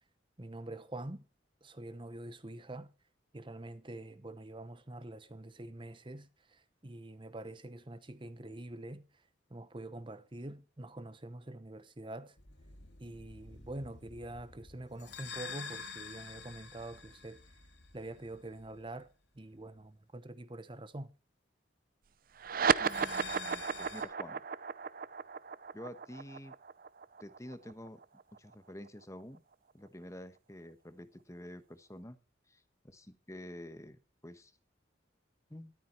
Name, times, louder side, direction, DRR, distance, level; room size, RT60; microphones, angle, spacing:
voice 1, 0.4-1.2 1.6-2.9 3.3-9.0 9.5-12.3 13.0-17.4 17.9-19.1 19.4-21.1, right 1 dB, 25° right, 0.9 m, -45 dB
sound 1, 12.4-19.0 22.7-24.0, left 5 dB, 65° left, 2.8 m, -48 dB
sound 2, 22.4-29.2, right 6 dB, 50° right, 0.6 m, -34 dB
voice 2, 22.8-24.4 25.7-26.6 27.2-28.0 28.4-29.4 29.7-32.2 32.5-34.5 35.5-35.7, left 1 dB, 15° left, 1.1 m, -49 dB
13.5 x 13.0 x 4.5 m
head